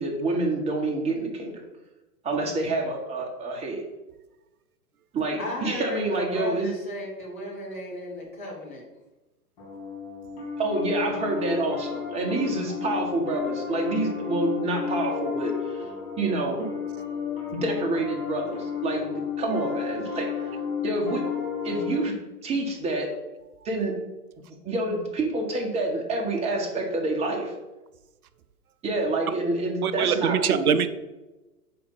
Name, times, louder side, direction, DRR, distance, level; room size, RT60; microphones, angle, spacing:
voice 1, 0.0-1.5 2.2-3.8 5.1-6.7 10.6-15.8 16.2-16.7 17.5-20.5 20.8-21.2 21.6-22.1 22.4-23.1 23.6-24.0 24.6-27.5 28.8-30.7, right 2 dB, 15° right, 0 dB, 1.1 m, -27 dB
voice 2, 5.4-8.8, left 2 dB, 10° left, -3 dB, 0.3 m, -35 dB
Piano, 9.6-22.0, left 7 dB, 40° left, 1.6 m, -32 dB
voice 3, 29.8-30.9, right 8 dB, 65° right, 12 dB, 0.6 m, -23 dB
4.9 x 4.3 x 5.8 m, 1.1 s
figure-of-eight pair, 115°, 47 cm